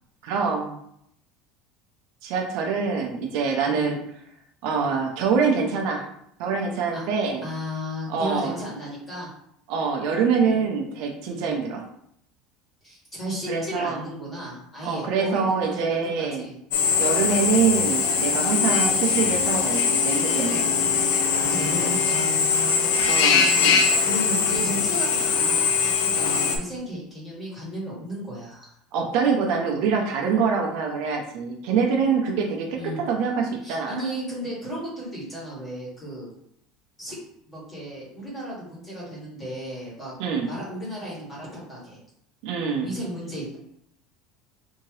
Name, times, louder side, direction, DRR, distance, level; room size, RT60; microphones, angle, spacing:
voice 1, 0.2-0.8 2.2-4.0 4.6-6.1 6.4-7.4 8.1-8.6 9.7-11.9 13.5-14.0 14.8-16.4 17.0-20.6 23.0-23.8 28.9-34.0 40.2-40.5 42.4-42.9, right 5 dB, 55° right, 1 dB, 0.6 m, -25 dB
voice 2, 3.6-3.9 6.9-7.0 7.4-9.3 10.4-10.6 11.2-11.5 12.8-16.5 18.4-18.7 21.4-23.0 23.3-23.7 24.0-28.7 32.7-33.0 33.6-36.3 37.0-37.2 37.4-40.1 40.4-42.0 42.8-43.6, equal, 15° left, -6 dB, 1.5 m, -34 dB
Drill, 16.7-26.6, left 6 dB, 75° left, 0.5 m, -22 dB
Brass instrument, 17.9-22.1, left 8 dB, ahead, 1.3 m, -36 dB
3.5 x 2.8 x 3.1 m, 0.73 s
cardioid pair, 170°, 0 cm